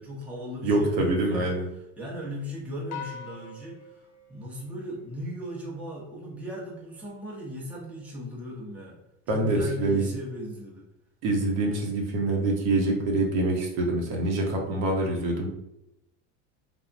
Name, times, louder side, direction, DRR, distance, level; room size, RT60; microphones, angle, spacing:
voice 1, 0.0-1.5 2.0-9.0 9.3-10.9, equal, 5° right, -5 dB, 0.6 m, -37 dB
voice 2, 0.6-1.7 9.3-10.1 11.2-15.5, right 2 dB, 65° right, 0 dB, 0.9 m, -25 dB
sound 1, 2.9-5.4, left 7 dB, 70° left, 0.6 m, -43 dB
3.4 x 2.0 x 2.5 m, 0.86 s
supercardioid pair, 120°, 38 cm